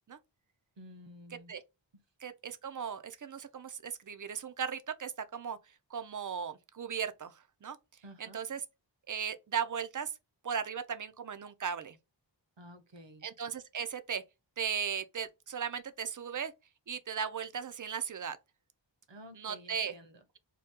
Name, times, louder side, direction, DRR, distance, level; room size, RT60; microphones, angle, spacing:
voice 1, 0.8-1.5 8.0-8.4 12.6-13.3 19.1-20.2, equal, 65° right, 0.9 m, -52 dB
voice 2, 2.2-5.6 5.9-7.8 8.2-8.6 9.1-10.1 10.4-12.0 13.2-14.2 14.6-16.5 16.9-18.4 19.3-19.9, right 7 dB, 45° right, 0.5 m, -37 dB
2.8 x 2.2 x 3.5 m
wide cardioid pair, 40°, 46 cm